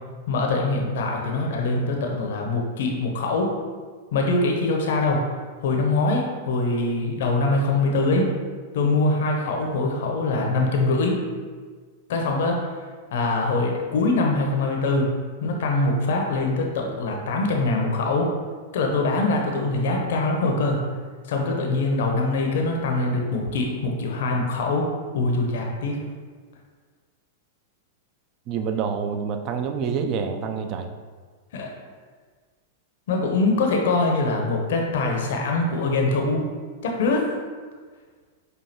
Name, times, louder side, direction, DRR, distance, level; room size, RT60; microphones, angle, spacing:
voice 1, 0.3-3.5 4.1-5.2 5.6-8.3 8.7-11.2 12.1-12.6 13.1-15.1 15.4-18.3 18.7-20.8 21.3-24.9 25.1-26.0 31.5-31.7 33.1-36.4 36.8-37.4, left 2 dB, 65° left, 1 dB, 0.6 m, -23 dB
voice 2, 28.5-30.9, right 6 dB, 40° right, 6 dB, 0.3 m, -27 dB
5.0 x 2.3 x 2.8 m, 1.5 s
hypercardioid pair, 100°, 0 cm